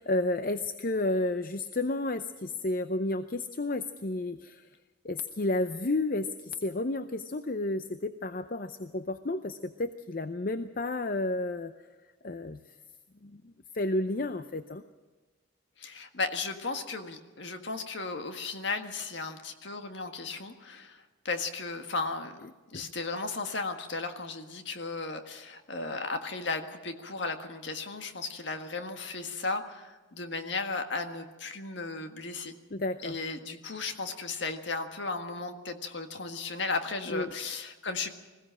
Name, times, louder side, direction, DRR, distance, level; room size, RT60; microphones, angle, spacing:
voice 1, 0.0-4.7 5.0-11.7 12.2-12.6 13.2-14.8 22.7-22.9 32.7-33.2 37.1-37.3, left 2 dB, 45° left, 10 dB, 0.6 m, -31 dB
voice 2, 15.8-22.4 22.7-32.5 33.0-38.1, left 3 dB, 60° left, 6 dB, 1.7 m, -35 dB
21.0 x 16.5 x 7.5 m, 1.3 s
head